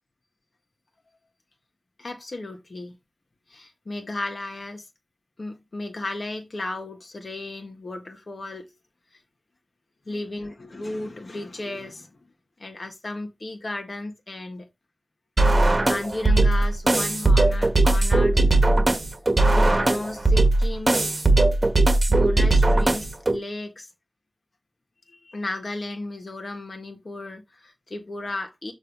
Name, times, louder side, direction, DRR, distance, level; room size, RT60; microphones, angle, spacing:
voice 1, 2.0-3.0 3.5-4.8 5.4-8.7 10.1-12.2 12.6-14.7 15.8-18.4 19.5-21.1 22.1-23.9 25.2-28.7, left 2 dB, 55° left, 1.5 m, -34 dB
sound 1, 15.4-23.4, right 2 dB, 35° right, 1.6 m, -19 dB
7.0 x 3.1 x 5.9 m
wide cardioid pair, 70°, 0 cm